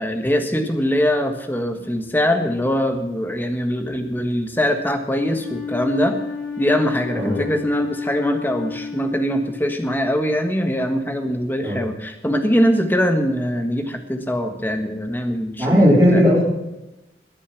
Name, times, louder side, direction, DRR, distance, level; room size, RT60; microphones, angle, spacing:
voice 1, 0.0-6.2 6.6-16.2, equal, 10° left, 5 dB, 1.4 m, -22 dB
Wind instrument woodwind instrument, 5.3-10.1, left 5 dB, 90° left, 4.2 m, -31 dB
voice 2, 15.6-16.4, equal, 20° right, -9 dB, 4.2 m, -15 dB
21.0 x 7.1 x 5.9 m, 0.98 s
head